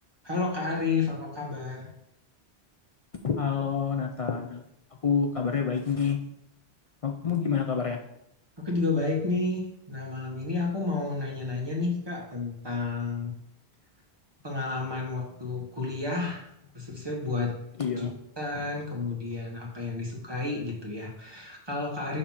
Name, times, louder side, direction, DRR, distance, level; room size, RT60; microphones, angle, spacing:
voice 1, 0.2-1.9 8.6-9.6 9.9-13.3 14.4-16.5 16.7-17.6 18.0-18.1 18.4-22.2, left 3 dB, 25° right, -2 dB, 1.4 m, -31 dB
voice 2, 3.2-4.6 5.0-6.2 7.0-8.0 17.8-18.1, left 6 dB, 50° left, 3 dB, 0.4 m, -27 dB
6.6 x 2.9 x 5.6 m, 0.78 s
omnidirectional pair, 1.1 m